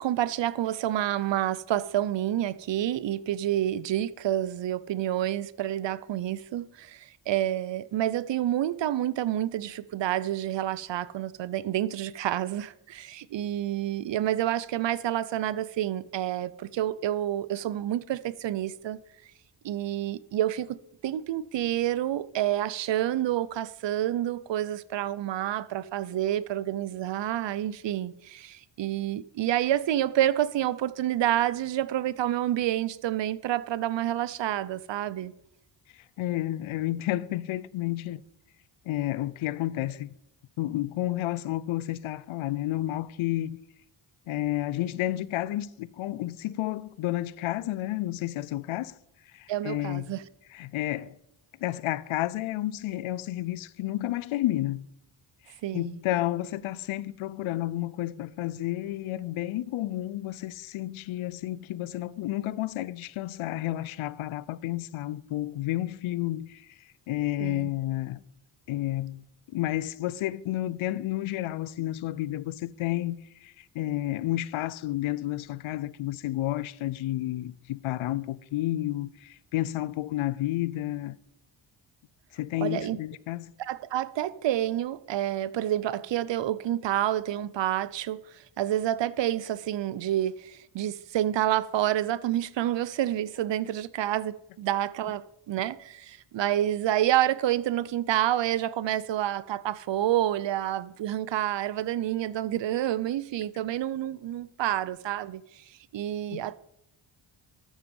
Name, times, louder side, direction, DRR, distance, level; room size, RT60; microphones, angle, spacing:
voice 1, 0.0-19.0 19.6-35.3 49.5-50.2 55.6-56.0 67.4-67.7 82.6-83.0 83.6-105.6 105.9-106.5, right 12 dB, 60° right, 0.7 m, -28 dB
voice 2, 35.9-38.2 38.9-40.1 40.6-43.6 44.3-49.0 49.3-50.1 50.5-51.2 51.6-54.9 55.7-68.2 68.7-69.2 69.5-81.2 82.3-83.5 106.3-106.5, left 15 dB, 80° left, 0.6 m, -31 dB
13.0 x 7.2 x 5.4 m
cardioid pair, 75°, 49 cm